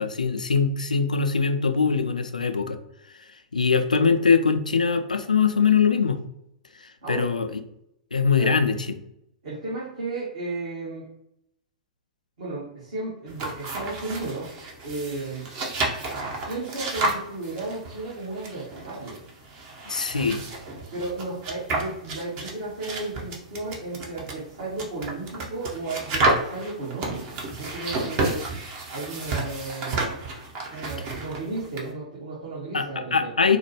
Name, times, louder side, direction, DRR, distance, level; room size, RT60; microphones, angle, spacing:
voice 1, 0.0-2.8 3.5-6.2 6.8-7.5 8.1-8.8 19.9-20.4 32.7-33.6, left 5 dB, 80° left, 8 dB, 0.3 m, -22 dB
voice 2, 9.4-11.1 12.4-15.5 16.3-19.2 20.9-28.4 28.9-30.1 30.7-33.3, right 3 dB, 55° right, -7 dB, 1.3 m, -34 dB
sound 1, 13.3-31.9, right 2 dB, 35° right, 0.7 m, -31 dB
4.1 x 2.1 x 3.0 m, 0.79 s
figure-of-eight pair, 105°, 4 cm